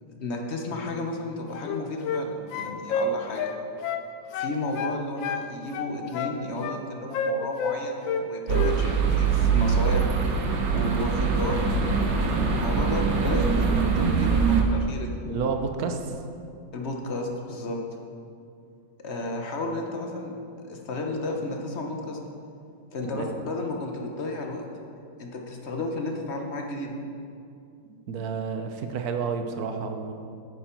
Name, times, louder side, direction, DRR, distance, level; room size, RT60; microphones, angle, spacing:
voice 1, 0.1-3.5 4.3-10.1 10.7-15.2 16.7-17.8 19.0-22.2 22.9-24.6 25.2-27.0, left 2 dB, 45° left, 2 dB, 1.0 m, -33 dB
sound 1, 1.5-2.3 2.5-4.1 4.3-5.5 5.7-6.8 7.1-8.2 8.5-8.8, left 5 dB, 80° left, 1.4 m, -29 dB
sound 2, 8.5-14.6, right 5 dB, 90° right, 1.8 m, -23 dB
voice 2, 15.3-16.2 23.0-23.4 27.9-30.1, right 5 dB, 60° right, 5 dB, 1.1 m, -30 dB
10.5 x 9.1 x 4.5 m, 2.5 s
omnidirectional pair, 2.0 m